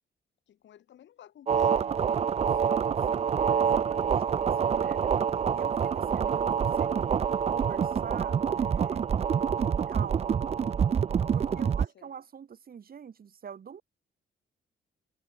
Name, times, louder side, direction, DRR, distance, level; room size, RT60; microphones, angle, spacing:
voice 1, 0.5-1.9 11.2-12.1, left 11 dB, 65° left, 2.6 m, -54 dB
sound 1, 1.5-11.9, right 7 dB, 30° right, 0.4 m, -26 dB
voice 2, 2.6-5.2 5.5-7.1 7.5-9.1 9.9-10.4 11.3-13.8, right 7 dB, 50° right, 3.0 m, -44 dB
cardioid pair, 90°, 20 cm